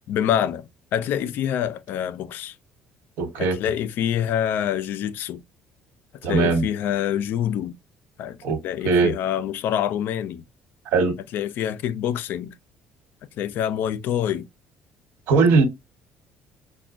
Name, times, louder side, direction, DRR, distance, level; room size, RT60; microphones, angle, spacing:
voice 1, 0.1-2.6 3.4-5.4 6.2-7.8 8.2-8.4 8.6-10.4 11.3-12.5 13.4-14.5, left 10 dB, 65° left, 0.4 m, -26 dB
voice 2, 3.2-3.6 6.2-6.6 8.4-8.6 8.8-9.1 10.9-11.2 15.3-15.6, right 4 dB, 75° right, 1.1 m, -19 dB
4.9 x 2.2 x 2.4 m
cardioid pair, 130°, 4 cm